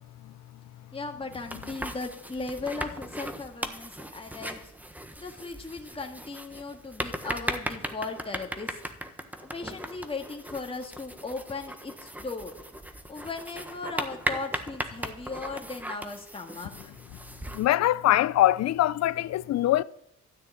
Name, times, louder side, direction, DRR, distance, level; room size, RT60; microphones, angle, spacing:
voice 1, 0.9-4.7 5.2-8.8 9.4-12.5 13.1-17.0, left 3 dB, 20° left, 1.9 m, -37 dB
sound 1, 1.3-17.7, right 1 dB, 5° right, 1.3 m, -38 dB
voice 2, 17.5-19.8, left 14 dB, 60° left, 0.6 m, -23 dB
13.0 x 6.4 x 9.8 m
cardioid pair, 90°, 30 cm